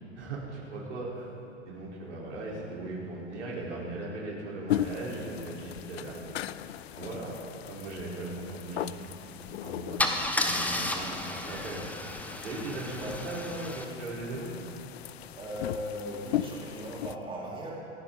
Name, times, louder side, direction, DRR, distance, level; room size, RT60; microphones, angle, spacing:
voice 1, 0.2-1.3 1.6-6.3 6.9-9.2 9.6-11.2 11.4-11.9 12.3-14.6, right 2 dB, 70° right, -5 dB, 4.3 m, -38 dB
sound 1, 4.7-17.2, left 12 dB, 60° left, 0.5 m, -38 dB
Car / Engine starting / Idling, 9.3-9.5 10.0-13.8, left 1 dB, 5° left, 0.9 m, -32 dB
voice 2, 15.3-17.7, equal, 15° right, -5 dB, 4.1 m, -37 dB
27.0 x 10.0 x 4.0 m, 2.9 s
figure-of-eight pair, 85°, 36 cm